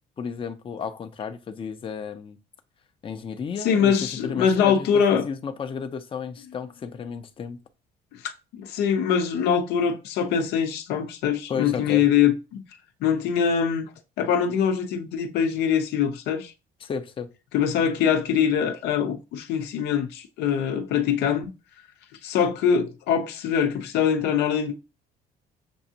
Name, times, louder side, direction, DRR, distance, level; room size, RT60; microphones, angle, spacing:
voice 1, 0.2-2.4 3.0-7.6 11.5-12.0 16.8-17.3, left 6 dB, 30° left, 0.6 m, -33 dB
voice 2, 3.6-5.3 8.5-12.6 13.0-13.9 14.2-16.5 17.5-21.5 22.2-24.7, left 7 dB, 85° left, 0.7 m, -23 dB
6.9 x 2.5 x 2.8 m
cardioid pair, 110°, 17 cm